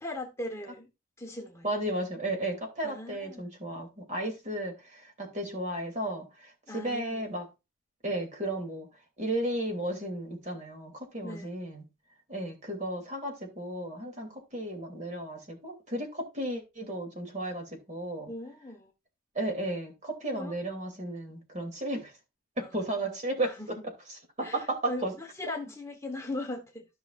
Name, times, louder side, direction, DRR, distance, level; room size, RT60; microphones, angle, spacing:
voice 1, 0.0-0.9 1.2-1.7 2.8-3.4 6.7-7.3 11.2-11.5 18.3-18.9 20.3-20.5 22.6-22.7 23.4-23.7 24.4-26.9, left 2 dB, 15° left, 1.1 m, -39 dB
voice 2, 1.6-7.5 8.0-8.9 9.2-11.8 12.3-18.3 19.3-22.1 22.6-25.1 25.4-25.5, right 1 dB, 35° right, 2.8 m, -34 dB
14.0 x 5.7 x 2.5 m
head